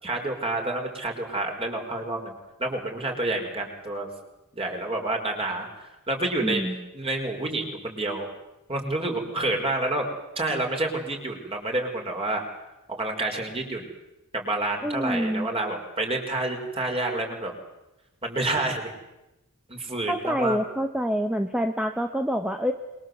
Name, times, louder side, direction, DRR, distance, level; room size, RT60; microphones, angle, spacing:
voice 1, 0.0-4.1 4.5-6.6 6.9-8.3 8.7-10.1 10.4-12.4 13.0-13.9 14.3-17.5 18.2-18.9 19.7-20.6, right 2 dB, 25° right, 2 dB, 5.4 m, -29 dB
voice 2, 6.4-6.8 14.8-15.5 20.1-22.7, equal, 5° right, 6 dB, 1.3 m, -26 dB
27.0 x 23.5 x 8.1 m, 0.95 s
head